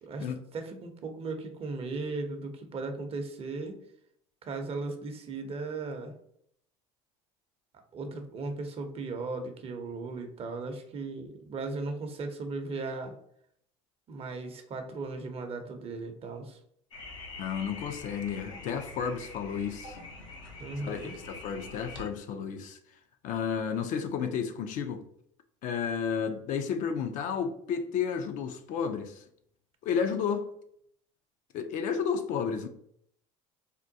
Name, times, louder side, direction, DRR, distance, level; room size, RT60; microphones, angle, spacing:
voice 1, 0.5-3.8 4.4-6.1 7.9-13.1 14.1-16.6 20.6-21.1, right 3 dB, 40° right, 0.6 m, -37 dB
sound 1, 16.9-22.1, left 2 dB, 85° left, 0.7 m, -45 dB
voice 2, 17.4-20.0 20.8-22.8 23.2-25.0 25.6-29.2 29.8-30.5 31.5-32.7, left 7 dB, 55° left, 0.4 m, -32 dB
3.6 x 2.2 x 2.7 m
hypercardioid pair, 80°, 16 cm